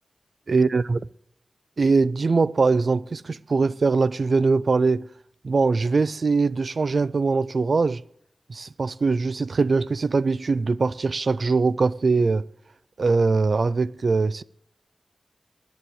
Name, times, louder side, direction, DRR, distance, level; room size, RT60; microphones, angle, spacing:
voice 1, 0.5-1.0 1.8-5.1 5.4-8.0 8.5-12.5 13.0-14.4, right 4 dB, 65° right, 0.4 m, -22 dB
10.0 x 7.1 x 9.3 m
cardioid pair, 50°, 0 cm